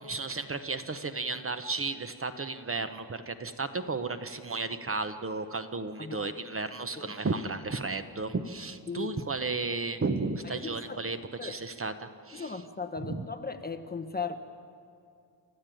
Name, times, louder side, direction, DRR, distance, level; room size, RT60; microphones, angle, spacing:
voice 1, 0.0-12.6 13.0-13.3, right 3 dB, 30° right, 9 dB, 0.9 m, -34 dB
voice 2, 6.0-6.3 7.0-7.1 8.9-9.1 10.4-11.0 11.4-11.5 12.3-14.4, left 5 dB, 20° left, 7 dB, 0.9 m, -37 dB
29.5 x 13.5 x 9.1 m, 2.4 s
wide cardioid pair, 165°, 44 cm